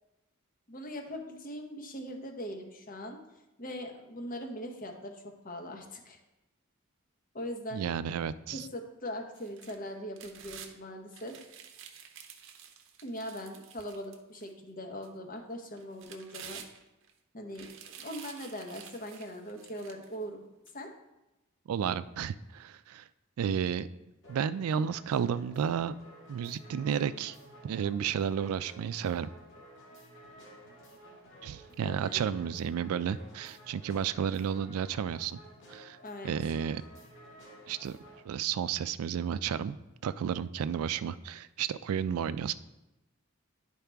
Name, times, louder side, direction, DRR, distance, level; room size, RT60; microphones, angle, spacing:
voice 1, 0.7-3.2 3.6-6.2 7.3-7.9 8.5-11.4 13.0-16.6 17.3-17.7 18.0-20.4 20.7-20.9 31.8-32.3 36.0-36.3, equal, 40° left, 3 dB, 1.0 m, -41 dB
voice 2, 7.7-8.7 21.7-23.0 23.4-23.9 24.3-25.9 26.3-27.4 27.6-29.3 31.4-35.4 35.7-36.0 36.2-36.8 37.7-38.0 38.3-39.8 40.0-42.5, right 8 dB, 80° right, 14 dB, 0.3 m, -32 dB
sound 1, 9.3-10.7 11.1-14.5 15.0-15.1 15.8-17.1 17.5-20.2 20.7-20.8, right 8 dB, 60° right, 0.7 m, -50 dB
sound 2, 24.2-38.3, right 1 dB, 55° left, 1.9 m, -53 dB
10.5 x 4.7 x 3.4 m, 0.99 s
head